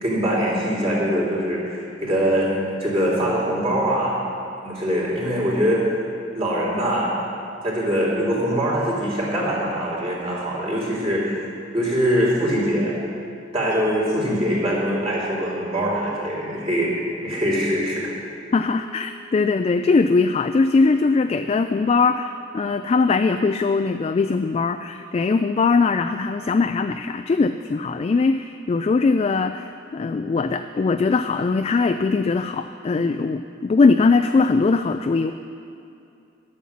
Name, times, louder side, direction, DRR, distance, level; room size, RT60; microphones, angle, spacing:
voice 1, 0.0-2.5 2.8-4.2 4.6-5.8 6.3-7.2 7.6-11.4 11.7-13.0 13.5-16.9 17.2-18.1, equal, 30° right, -5 dB, 3.3 m, -23 dB
sound 1, 13.7-22.0, equal, 60° right, 2.0 m, -38 dB
voice 2, 18.5-35.3, left 4 dB, 35° left, 8 dB, 0.3 m, -20 dB
11.0 x 8.4 x 7.2 m, 2.6 s
head